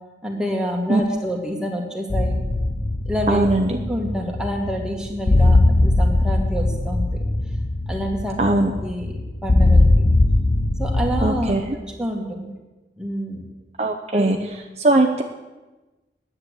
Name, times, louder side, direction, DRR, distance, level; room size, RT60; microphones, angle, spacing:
voice 1, 0.2-2.4 3.1-7.2 7.9-10.1 10.8-12.5 13.0-13.4 14.1-14.4, equal, 5° right, 0 dB, 1.9 m, -28 dB
sound 1, 2.1-11.5, left 2 dB, 40° left, 0.7 m, -20 dB
voice 2, 3.3-3.8 8.4-8.7 11.2-11.7 13.8-14.4 14.8-15.2, right 2 dB, 35° right, 4 dB, 0.7 m, -19 dB
10.5 x 8.9 x 8.2 m, 1.2 s
head